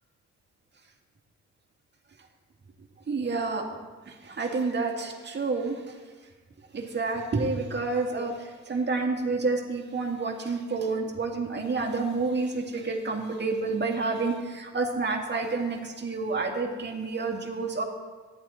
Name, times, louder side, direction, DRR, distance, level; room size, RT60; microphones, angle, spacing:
voice 1, 3.1-3.6 4.3-5.8 6.7-8.3 8.7-17.8, right 3 dB, 35° right, 1 dB, 2.1 m, -29 dB
14.0 x 10.5 x 4.4 m, 1.4 s
cardioid pair, 90°, 30 cm